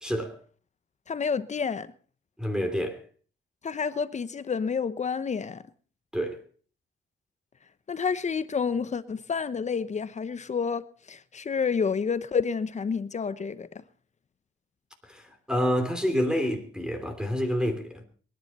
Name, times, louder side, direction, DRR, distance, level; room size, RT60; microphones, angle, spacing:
voice 1, 0.0-0.4 2.4-3.0 6.1-6.4 15.0-18.0, equal, 5° right, 3.0 m, -28 dB
voice 2, 1.1-1.9 3.6-5.6 7.9-13.7, left 6 dB, 35° left, 0.9 m, -29 dB
23.5 x 10.5 x 4.3 m
cardioid pair, 90°, 20 cm